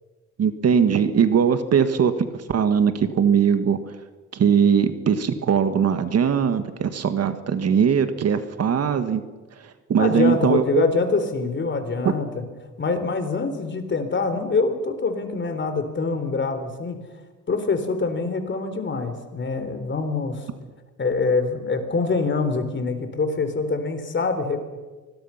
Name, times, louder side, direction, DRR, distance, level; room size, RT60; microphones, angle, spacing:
voice 1, 0.4-3.8 4.3-9.2 9.9-10.9 12.0-12.1, right 7 dB, 55° right, 9 dB, 1.8 m, -20 dB
voice 2, 10.0-12.4 12.8-17.0 17.5-20.5 21.0-24.6, left 4 dB, 40° left, 8 dB, 3.8 m, -24 dB
25.5 x 20.5 x 5.9 m, 1.3 s
cardioid pair, 90°, 30 cm